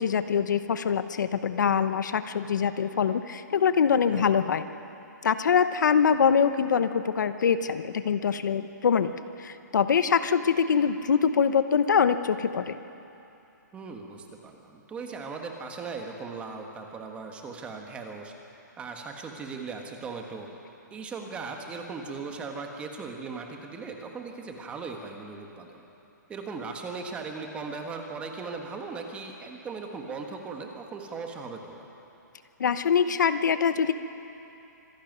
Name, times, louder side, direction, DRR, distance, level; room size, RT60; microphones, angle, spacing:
voice 1, 0.0-4.7 5.2-9.1 9.4-12.8 32.6-33.9, left 7 dB, 70° left, 11 dB, 1.0 m, -24 dB
voice 2, 13.7-18.3 18.8-20.5 20.9-25.8 26.3-31.9, right 4 dB, 10° right, 3 dB, 1.4 m, -38 dB
25.5 x 11.5 x 9.3 m, 2.9 s
hypercardioid pair, 165°, 10 cm